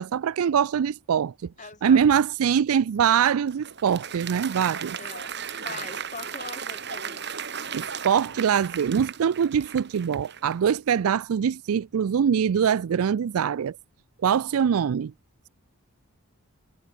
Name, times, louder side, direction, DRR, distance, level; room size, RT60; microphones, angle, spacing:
voice 1, 0.0-1.3 1.8-5.0 7.7-13.8 14.2-15.1, right 7 dB, 80° right, 0.4 m, -23 dB
voice 2, 1.6-2.2 4.9-5.3 5.6-7.3, left 4 dB, 35° left, 4.8 m, -41 dB
Applause, 3.1-10.7, right 7 dB, 50° right, 2.4 m, -36 dB
head